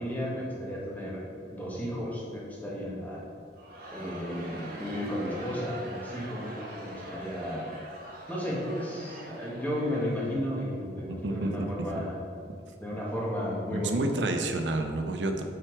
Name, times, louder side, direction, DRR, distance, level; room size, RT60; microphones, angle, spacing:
voice 1, 0.0-3.3 3.9-7.7 8.3-12.2 12.8-14.0, equal, 10° left, -5 dB, 1.7 m, -34 dB
Crowd, 3.5-10.8, equal, 60° right, 1.3 m, -43 dB
voice 2, 11.1-11.7 13.7-15.4, right 2 dB, 90° right, 5 dB, 0.7 m, -29 dB
8.1 x 4.6 x 4.7 m, 2.3 s
head